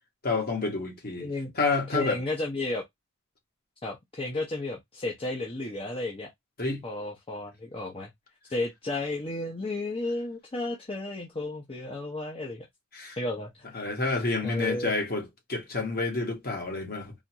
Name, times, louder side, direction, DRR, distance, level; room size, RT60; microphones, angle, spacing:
voice 1, 0.2-1.3 1.5-2.2 6.6-6.8 12.9-13.2 13.7-17.1, left 3 dB, 45° left, 1.7 m, -29 dB
voice 2, 1.2-1.5 1.9-2.8 3.8-6.3 6.8-8.1 8.5-12.7 13.2-13.9 14.4-15.0, left 2 dB, 25° left, 0.9 m, -33 dB
4.0 x 2.6 x 3.0 m
head